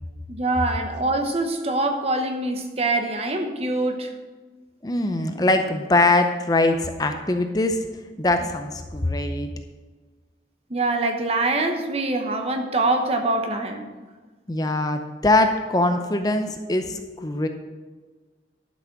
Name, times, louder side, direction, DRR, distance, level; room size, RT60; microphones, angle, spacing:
voice 1, 0.3-4.1 10.7-13.9, right 2 dB, 35° right, 5 dB, 1.0 m, -24 dB
voice 2, 4.8-7.8 8.2-9.5 14.5-17.5, left 2 dB, 20° left, 6 dB, 0.6 m, -22 dB
11.5 x 6.2 x 5.9 m, 1.4 s
head